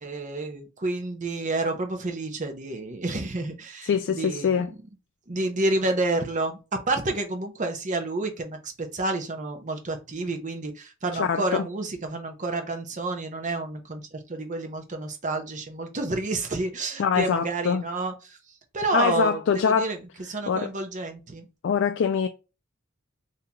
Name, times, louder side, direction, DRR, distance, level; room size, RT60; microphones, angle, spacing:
voice 1, 0.0-4.7 5.3-6.6 6.9-18.4 18.7-20.0 20.3-21.5, right 2 dB, 35° right, 0.8 m, -29 dB
voice 2, 3.8-4.7 11.1-11.6 17.0-17.8 18.9-19.9 20.5-20.7 21.6-22.3, left 6 dB, 60° left, 0.3 m, -24 dB
3.7 x 2.8 x 2.8 m
head